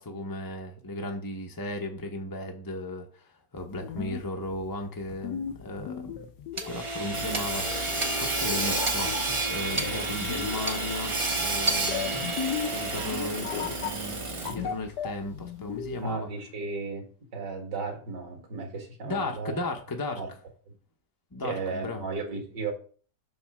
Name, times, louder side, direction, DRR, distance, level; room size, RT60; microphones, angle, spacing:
voice 1, 0.0-6.3 6.7-12.3 12.7-16.3 19.0-20.2 21.3-22.0, left 1 dB, 25° left, 0.5 m, -36 dB
sound 1, 3.6-16.1, left 8 dB, 70° left, 1.3 m, -37 dB
Hammer / Sawing, 6.6-14.7, right 2 dB, 40° right, 0.4 m, -30 dB
voice 2, 16.0-19.5 20.1-20.3 21.4-22.7, right 4 dB, 70° right, 2.3 m, -34 dB
6.9 x 3.2 x 6.0 m
omnidirectional pair, 1.9 m